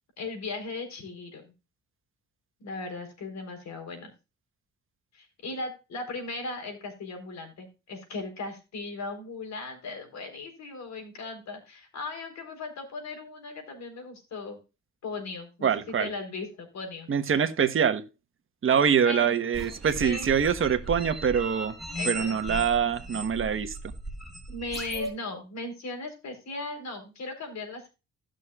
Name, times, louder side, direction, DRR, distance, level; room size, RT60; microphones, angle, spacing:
voice 1, 0.2-1.5 2.6-4.1 5.1-14.6 15.0-15.7 16.0-17.1 19.0-19.4 20.0-20.3 21.9-22.4 22.8-22.9 24.5-27.9, left 3 dB, 65° left, 4.1 m, -37 dB
voice 2, 15.6-16.1 17.1-18.0 18.6-21.8 22.0-23.8, right 7 dB, 45° right, 1.3 m, -24 dB
sound 1, 19.5-25.1, right 1 dB, ahead, 4.3 m, -36 dB
16.5 x 6.4 x 2.4 m
cardioid pair, 90°, 30 cm